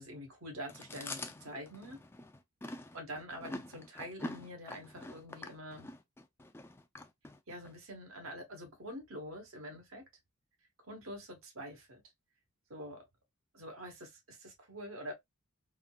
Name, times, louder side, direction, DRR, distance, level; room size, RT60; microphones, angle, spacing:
voice 1, 0.0-2.0 2.9-5.9 7.5-10.0 10.8-12.0 12.7-13.0 13.5-15.1, equal, 70° right, 1.1 m, -46 dB
Chewing mastication, 0.7-7.7, left 2 dB, 10° left, 0.3 m, -45 dB
3.6 x 2.3 x 2.3 m
head